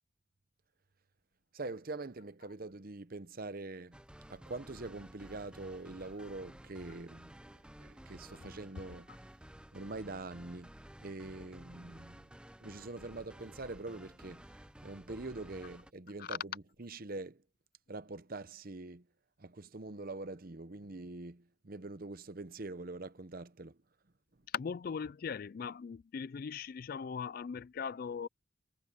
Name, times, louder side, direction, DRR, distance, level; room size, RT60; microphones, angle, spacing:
voice 1, 1.5-4.0 4.3-9.1 9.7-10.7 11.0-12.3 12.6-17.4 17.9-19.1 19.4-23.8, right 2 dB, 45° right, 0.8 m, -44 dB
sound 1, 3.9-15.9, right 1 dB, 5° right, 0.5 m, -54 dB
voice 2, 24.5-28.3, left 6 dB, 45° left, 0.3 m, -39 dB
head